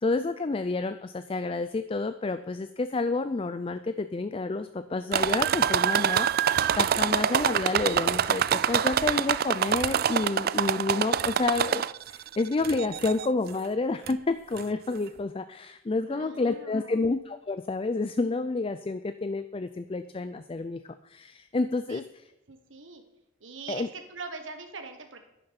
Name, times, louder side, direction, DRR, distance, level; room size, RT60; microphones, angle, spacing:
voice 1, 0.0-11.8 12.1-22.0 23.7-23.9, left 3 dB, 25° left, 11 dB, 0.4 m, -29 dB
sound 1, 5.1-12.2 12.6-13.3 14.1-14.2 14.6-14.7, right 8 dB, 50° right, 0.3 m, -25 dB
voice 2, 16.1-17.1 21.9-22.0 22.5-23.0 23.4-25.2, right 4 dB, 70° right, 6 dB, 1.4 m, -43 dB
11.0 x 10.0 x 5.9 m, 0.85 s
head